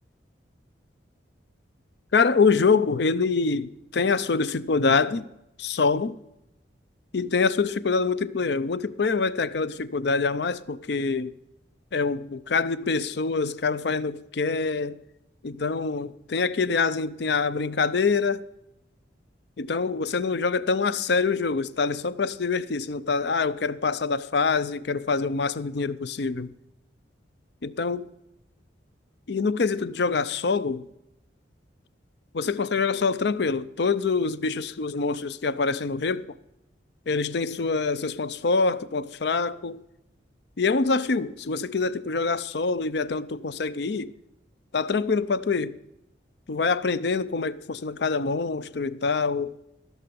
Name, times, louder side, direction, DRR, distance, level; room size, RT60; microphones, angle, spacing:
voice 1, 2.1-5.3 5.6-6.2 7.1-11.3 11.9-15.0 15.4-18.4 19.6-26.5 27.6-28.1 29.3-30.9 32.3-36.4 37.1-39.8 40.6-44.1 44.7-45.8 46.5-49.6, left 4 dB, 65° left, 0.5 m, -25 dB
15.0 x 6.8 x 6.9 m
head